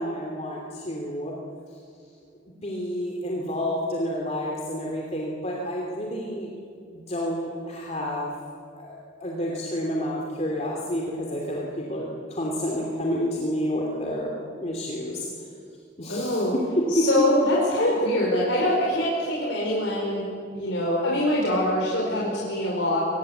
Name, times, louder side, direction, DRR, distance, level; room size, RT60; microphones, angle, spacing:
voice 1, 0.0-1.3 2.6-6.5 6.9-8.3 8.8-15.3 16.0-17.1, equal, 35° left, -2 dB, 2.9 m, -29 dB
voice 2, 16.1-16.5 16.9-23.0, left 1 dB, 80° left, -4 dB, 5.1 m, -24 dB
24.0 x 20.5 x 8.1 m, 2.3 s
head